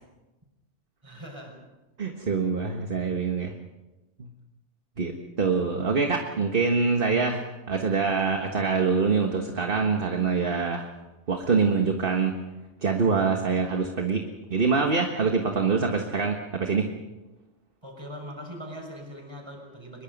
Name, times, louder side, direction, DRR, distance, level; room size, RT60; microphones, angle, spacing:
voice 1, 1.0-1.6 17.8-20.0, equal, 20° right, 1 dB, 6.2 m, -41 dB
voice 2, 2.0-3.5 5.0-5.1 5.4-10.9 11.3-12.4 12.8-14.2 14.5-16.9, right 5 dB, 50° right, 3 dB, 1.7 m, -25 dB
24.0 x 22.0 x 5.4 m, 1.1 s
omnidirectional pair, 1.2 m